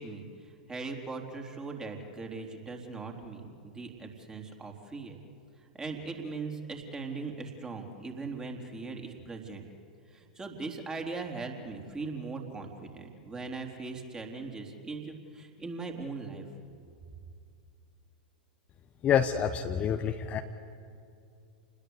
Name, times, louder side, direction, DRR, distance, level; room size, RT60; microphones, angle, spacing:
voice 1, 0.0-5.2 5.6-9.6 10.1-16.5, right 4 dB, 15° right, 3 dB, 3.8 m, -40 dB
voice 2, 19.0-20.4, left 8 dB, 30° left, 6 dB, 1.2 m, -27 dB
29.0 x 20.5 x 8.3 m, 2.4 s
figure-of-eight pair, 95°, 5 cm